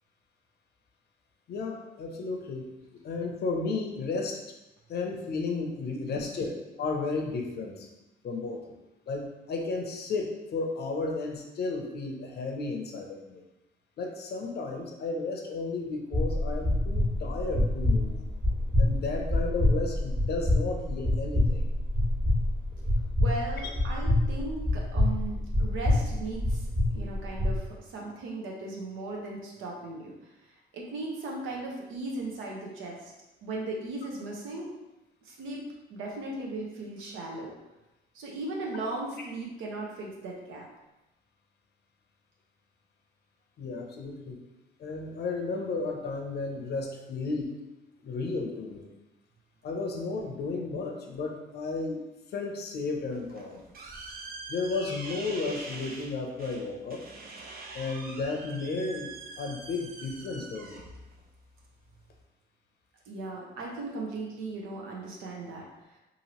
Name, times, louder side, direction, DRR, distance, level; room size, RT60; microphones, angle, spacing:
voice 1, 1.5-2.7 3.0-4.4 4.9-7.9 8.2-8.6 9.1-13.4 14.0-18.2 18.8-21.7 43.6-44.4 44.8-47.6 48.0-48.9 49.6-52.0 52.3-53.6 54.5-57.0 57.7-59.1 59.4-60.8, left 3 dB, 55° left, 2 dB, 0.6 m, -33 dB
sound 1, 16.1-27.6, left 1 dB, 30° right, 1.3 m, -27 dB
voice 2, 23.2-30.3 30.7-33.1 33.4-34.7 35.2-37.5 38.1-40.7 63.1-66.0, right 2 dB, 85° right, -2 dB, 0.7 m, -37 dB
sound 2, 53.1-62.2, right 3 dB, 50° right, 0.6 m, -44 dB
2.8 x 2.6 x 2.9 m, 0.99 s
cardioid pair, 90°, 20 cm